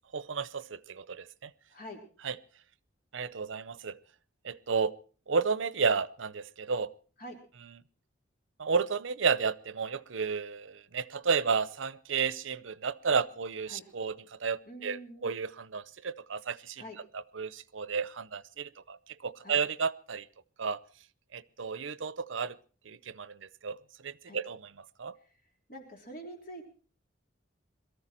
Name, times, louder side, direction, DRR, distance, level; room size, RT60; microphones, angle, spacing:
voice 1, 0.1-1.5 2.2-2.4 3.1-4.0 4.4-5.0 5.3-6.9 7.6-7.7 8.6-16.8 17.1-20.3 20.6-20.8 21.3-22.6 22.8-25.1, right 5 dB, 80° right, 0.7 m, -32 dB
voice 2, 1.7-2.0 7.2-7.4 13.7-13.8 14.7-15.4 16.8-17.0 19.4-19.6 24.3-24.4 25.7-26.7, equal, 45° left, 3.5 m, -45 dB
22.5 x 14.0 x 4.4 m
head